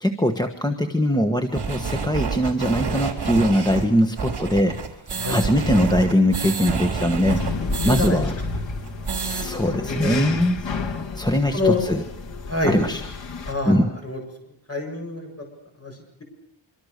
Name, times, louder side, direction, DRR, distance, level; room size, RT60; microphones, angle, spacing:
voice 1, 0.0-4.8 5.3-7.4 7.8-8.3 9.1-10.7 11.1-12.0 12.6-13.0 13.6-13.9, equal, 10° left, 4 dB, 1.4 m, -21 dB
sound 1, 1.5-8.1 8.4-8.5 8.8-9.5, right 5 dB, 55° right, 4.1 m, -28 dB
sound 2, 7.3-13.5, left 3 dB, 70° left, 2.8 m, -31 dB
voice 2, 7.6-8.2 9.6-10.3 11.5-11.8 12.5-12.7 13.5-14.2 14.7-15.3 15.8-15.9, left 2 dB, 30° left, 3 dB, 7.3 m, -26 dB
25.5 x 25.0 x 6.8 m, 0.69 s
wide cardioid pair, 150°, 47 cm